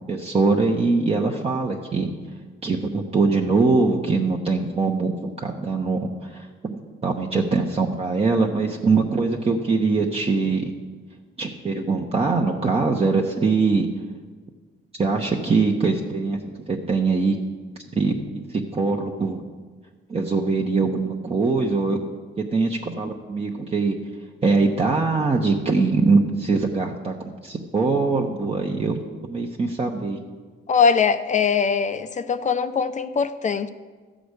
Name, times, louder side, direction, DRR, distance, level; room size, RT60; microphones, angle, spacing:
voice 1, 0.1-2.1 2.6-5.1 5.4-10.7 11.4-13.9 15.0-17.4 17.9-18.1 18.5-19.4 20.1-22.0 22.5-23.9 24.4-27.1 27.4-29.0 29.3-30.2, right 4 dB, 30° right, 1.0 m, -22 dB
voice 2, 30.7-33.7, left 6 dB, 40° left, 0.6 m, -21 dB
13.0 x 5.0 x 8.2 m
cardioid pair, 90°, 20 cm